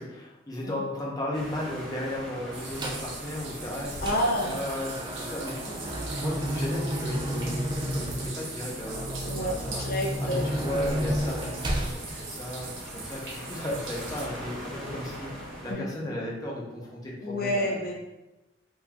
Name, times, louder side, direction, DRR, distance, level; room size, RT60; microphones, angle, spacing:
voice 1, 0.0-9.9 10.2-17.8, left 1 dB, 20° left, -4 dB, 0.7 m, -35 dB
sound 1, 1.3-15.7, equal, ahead, 1.2 m, -43 dB
sound 2, 2.5-14.3, right 3 dB, 90° right, 0.8 m, -41 dB
sound 3, 2.8-3.1 3.6-12.0, equal, 25° right, 0.4 m, -32 dB
voice 2, 4.0-4.6 9.2-10.5 15.7-15.9 17.2-18.0, left 1 dB, 55° left, 1 dB, 0.6 m, -29 dB
3.7 x 2.6 x 2.9 m, 0.97 s
head